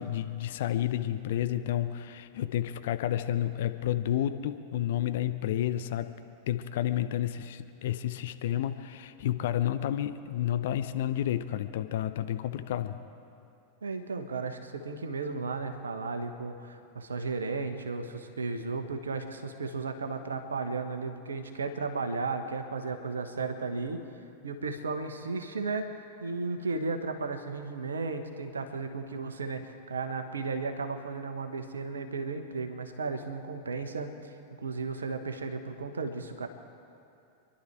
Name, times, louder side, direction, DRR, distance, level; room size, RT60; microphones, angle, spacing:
voice 1, 0.0-6.1 6.5-13.0, left 11 dB, 55° left, 10 dB, 0.7 m, -30 dB
voice 2, 13.8-24.0 24.4-36.5, right 4 dB, 70° right, 7 dB, 1.3 m, -34 dB
27.0 x 11.5 x 4.7 m, 2.6 s
figure-of-eight pair, 90°, 0 cm